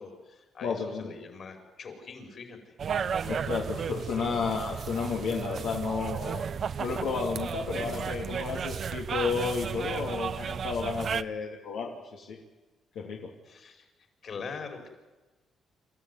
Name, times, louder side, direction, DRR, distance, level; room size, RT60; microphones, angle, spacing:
voice 1, 0.0-2.7 13.4-13.9 14.2-14.9, left 5 dB, 55° left, 4 dB, 5.3 m, -43 dB
voice 2, 0.6-1.0 3.2-6.4 6.8-12.4 12.9-13.3, left 5 dB, 80° left, -1 dB, 2.8 m, -32 dB
sound 1, 2.8-11.2, right 7 dB, 55° right, 0.8 m, -34 dB
26.5 x 14.5 x 9.6 m, 1.2 s
cardioid pair, 90°, 0 cm